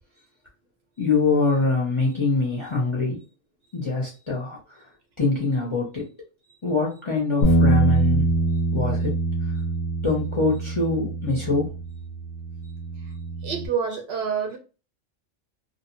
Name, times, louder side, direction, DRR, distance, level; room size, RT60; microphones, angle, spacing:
voice 1, 1.0-3.2 3.7-4.8 5.2-6.0 6.6-8.3 8.7-9.2 10.0-11.7, left 3 dB, 35° left, 0.5 m, -24 dB
Bass guitar, 7.4-13.7, right 2 dB, 65° left, 0.8 m, -24 dB
voice 2, 13.4-14.6, right 7 dB, 65° right, 0.7 m, -27 dB
2.5 x 2.1 x 2.7 m
omnidirectional pair, 1.3 m